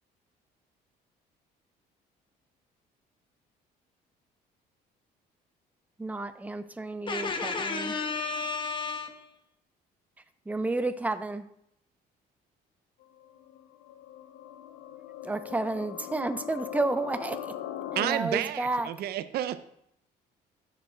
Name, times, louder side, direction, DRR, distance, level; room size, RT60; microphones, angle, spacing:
voice 1, 6.0-7.9 10.5-11.5 15.2-17.5 17.9-18.9, right 2 dB, 10° right, 10 dB, 0.5 m, -31 dB
voice 2, 7.1-9.4, left 4 dB, 30° left, 6 dB, 1.1 m, -32 dB
sound 1, 13.0-18.1, left 11 dB, 90° left, 0.5 m, -41 dB
voice 3, 17.9-19.6, right 12 dB, 70° right, 13 dB, 0.6 m, -30 dB
13.5 x 7.0 x 2.2 m, 0.75 s
cardioid pair, 110°, 17 cm